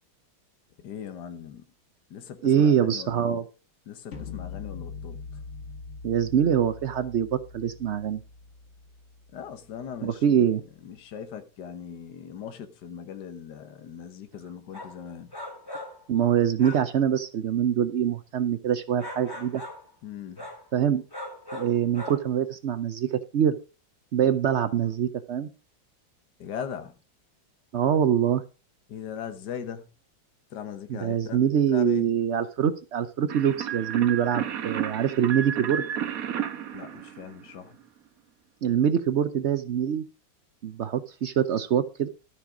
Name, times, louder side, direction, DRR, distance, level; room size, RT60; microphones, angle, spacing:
voice 1, 0.8-1.6 2.1-3.4 3.9-5.2 9.3-10.4 10.8-15.3 20.0-20.5 26.4-27.0 28.9-29.9 30.5-31.4 31.7-32.1 36.7-37.8, left 8 dB, 65° left, 1.8 m, -39 dB
voice 2, 2.4-3.4 6.0-8.2 10.0-10.6 16.1-19.6 20.7-21.0 21.5-23.6 24.1-25.5 27.7-28.4 30.9-35.8 38.6-40.0 40.6-42.1, right 9 dB, 80° right, 0.6 m, -24 dB
sound 1, 4.1-10.1, left 5 dB, 40° left, 2.0 m, -42 dB
sound 2, 14.7-15.0 15.3-16.0 16.6-17.0 19.0-19.9 20.4-20.7 21.1-22.2, left 1 dB, 10° left, 4.1 m, -39 dB
sound 3, 33.3-37.7, right 9 dB, 55° right, 1.2 m, -32 dB
13.0 x 6.7 x 4.9 m
omnidirectional pair, 2.1 m